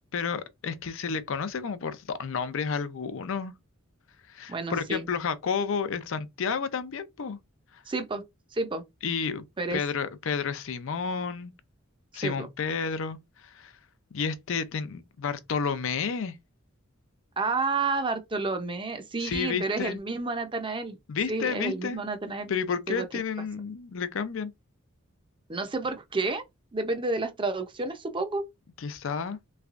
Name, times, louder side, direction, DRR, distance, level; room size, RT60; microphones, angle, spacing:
voice 1, 0.1-3.5 4.3-7.4 7.7-7.8 9.0-9.4 9.7-11.5 12.1-13.7 14.1-16.4 19.2-20.0 21.1-22.0 22.5-24.5 28.8-29.4, left 6 dB, 65° left, 0.5 m, -31 dB
voice 2, 4.5-5.1 7.9-8.2 8.5-8.8 9.6-9.8 12.2-12.5 17.4-21.0 21.3-22.5 22.9-23.1 25.5-26.4 26.7-28.4, right 3 dB, 25° right, 0.6 m, -30 dB
3.4 x 3.2 x 2.4 m
head